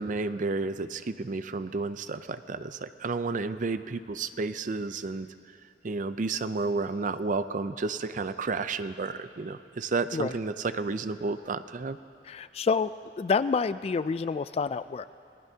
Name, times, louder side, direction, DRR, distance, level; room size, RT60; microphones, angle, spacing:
voice 1, 0.0-5.3 5.8-12.0, right 3 dB, 50° right, 12 dB, 0.5 m, -31 dB
voice 2, 12.3-12.9 13.2-15.0, left 5 dB, 35° left, 14 dB, 0.3 m, -28 dB
26.0 x 19.5 x 2.8 m, 2.5 s
head